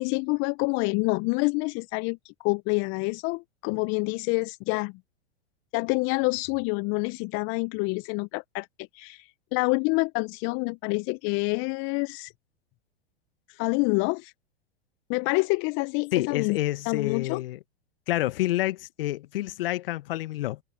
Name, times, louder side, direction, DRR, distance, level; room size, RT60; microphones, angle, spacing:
voice 1, 0.0-4.9 5.7-8.7 8.9-12.3 13.5-14.3 15.1-16.6 16.9-17.4, left 29 dB, 40° left, 0.9 m, -27 dB
voice 2, 16.1-17.6 18.1-20.6, left 16 dB, 60° left, 1.4 m, -28 dB
open air
hypercardioid pair, 100°, 32 cm